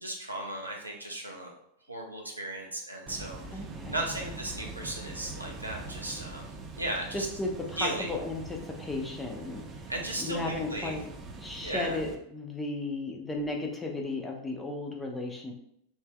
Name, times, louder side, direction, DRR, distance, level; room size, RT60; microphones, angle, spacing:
voice 1, 0.0-1.5 1.9-7.3 7.8-8.1 9.9-10.9 11.6-12.0, right 1 dB, 85° right, 0 dB, 0.7 m, -36 dB
sound 1, 3.1-12.1, right 3 dB, 25° right, 0.5 m, -43 dB
voice 2, 3.5-4.0 7.1-9.9 10.2-11.1 11.4-15.5, left 2 dB, 10° left, 1 dB, 0.8 m, -35 dB
5.6 x 2.6 x 2.3 m, 0.74 s
figure-of-eight pair, 90°, 0 cm